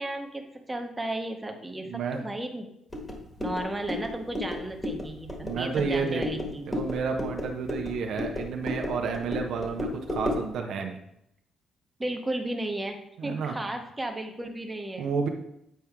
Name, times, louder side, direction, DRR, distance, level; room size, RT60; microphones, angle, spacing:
voice 1, 0.0-2.7 3.4-6.8 12.0-15.1, right 1 dB, 15° right, 3 dB, 1.1 m, -34 dB
voice 2, 1.9-2.2 5.4-6.2 6.7-11.0 13.2-13.6 15.0-15.3, right 5 dB, 75° right, 3 dB, 0.8 m, -30 dB
sound 1, 2.9-10.5, left 2 dB, 15° left, 1.7 m, -34 dB
8.2 x 4.4 x 3.6 m, 0.77 s
cardioid pair, 90°, 0 cm